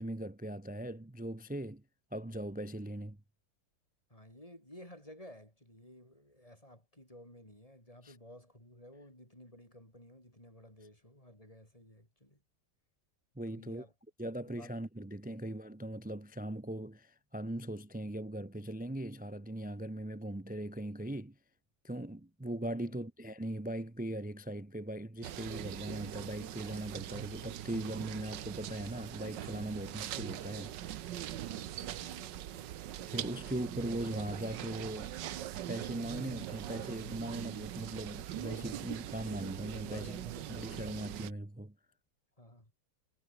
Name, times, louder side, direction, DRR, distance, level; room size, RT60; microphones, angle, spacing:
voice 1, 0.0-1.8 2.1-3.2 8.0-8.1 13.4-13.8 14.2-21.3 21.8-30.7 33.1-35.1 35.7-40.2 40.5-41.7, right 1 dB, 10° right, 0.4 m, -40 dB
voice 2, 4.1-12.4 13.5-13.9 14.5-15.4 22.8-23.0 31.4-33.5 39.8-40.7 42.4-42.7, left 1 dB, 15° left, 8.1 m, -55 dB
sound 1, 25.2-41.3, right 12 dB, 70° right, 1.5 m, -42 dB
omnidirectional pair, 2.1 m